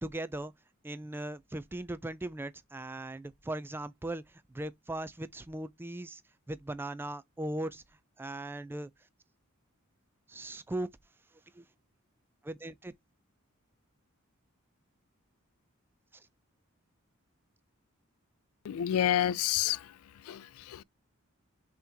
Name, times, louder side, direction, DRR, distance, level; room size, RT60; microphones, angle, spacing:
voice 1, 0.0-0.5 0.8-6.2 6.5-7.8 8.2-8.9 10.3-10.9 11.5-11.6 12.4-12.9 16.1-16.3, right 1 dB, 10° right, 0.3 m, -38 dB
voice 2, 18.6-19.9 20.2-20.8, left 11 dB, 90° left, 0.3 m, -29 dB
5.6 x 3.0 x 2.7 m
head